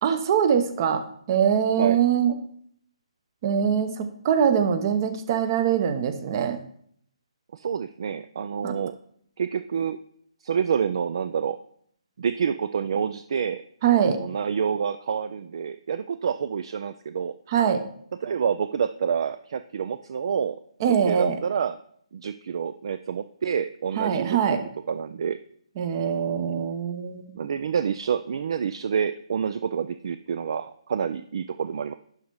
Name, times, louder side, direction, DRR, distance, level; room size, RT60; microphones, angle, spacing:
voice 1, 0.0-2.4 3.4-6.6 8.6-8.8 13.8-14.2 17.5-17.9 20.8-21.4 24.0-24.6 25.8-27.4, right 8 dB, 35° right, 10 dB, 0.9 m, -23 dB
voice 2, 7.5-8.9 9.4-10.0 10.4-11.6 12.2-13.6 14.2-17.3 18.2-20.6 20.9-21.8 22.1-25.4 27.4-31.9, right 7 dB, 55° right, 12 dB, 0.4 m, -28 dB
11.0 x 4.1 x 4.7 m, 0.64 s
figure-of-eight pair, 140°, 3 cm